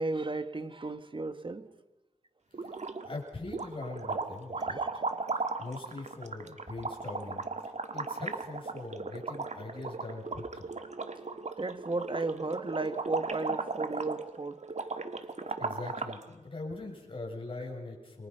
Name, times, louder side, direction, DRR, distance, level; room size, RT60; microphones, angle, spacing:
voice 1, 0.0-1.7 4.8-4.9 11.6-14.6, right 3 dB, 35° right, 1.6 m, -34 dB
voice 2, 2.5-5.1 5.3-10.7 15.3-18.3, left 3 dB, 40° left, 7.5 m, -42 dB
sound 1, 2.5-3.2 3.5-16.2, right 3 dB, 55° right, 1.8 m, -36 dB
29.0 x 23.5 x 5.8 m
wide cardioid pair, 80°, 14 cm